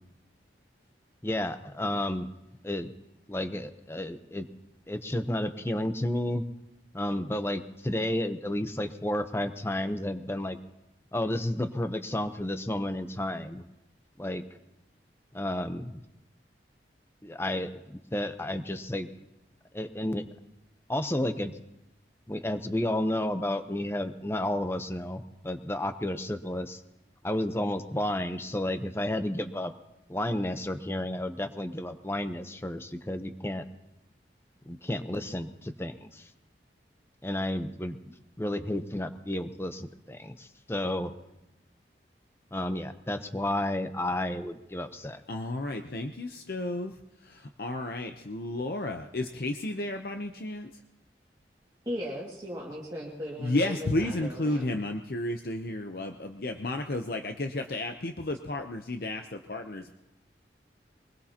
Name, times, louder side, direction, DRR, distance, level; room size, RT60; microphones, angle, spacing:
voice 1, 1.2-2.3 2.6-2.9 3.3-4.5 4.9-6.5 6.9-10.6 11.1-13.6 14.2-14.4 15.3-16.0 17.2-19.1 19.7-20.2 20.9-21.5 22.3-26.8 27.2-29.7 30.1-33.6 34.7-36.3 37.2-38.0 38.4-41.1 42.5-45.2, left 1 dB, 15° left, 9 dB, 0.8 m, -31 dB
voice 2, 45.3-46.9 47.2-50.7 53.4-59.9, left 2 dB, 55° left, 5 dB, 0.7 m, -32 dB
voice 3, 51.9-54.8, equal, 25° right, -6 dB, 2.1 m, -37 dB
23.0 x 20.5 x 2.9 m, 0.90 s
head